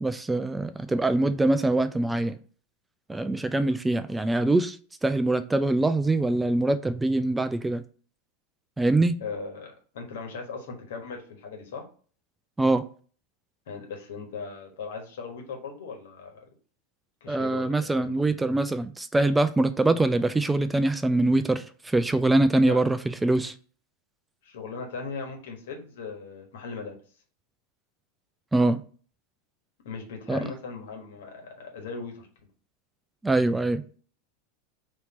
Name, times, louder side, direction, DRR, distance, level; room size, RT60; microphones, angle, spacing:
voice 1, 0.0-2.4 3.1-4.8 5.0-7.8 8.8-9.1 12.6-12.9 17.3-23.5 28.5-28.8 30.3-30.4 33.2-33.8, right 2 dB, 10° right, 0.3 m, -23 dB
voice 2, 9.2-11.8 13.7-16.4 17.2-18.2 22.6-22.8 24.4-27.0 29.8-32.3, left 4 dB, 70° left, 1.4 m, -38 dB
4.3 x 2.8 x 4.2 m
hypercardioid pair, 90°, 0 cm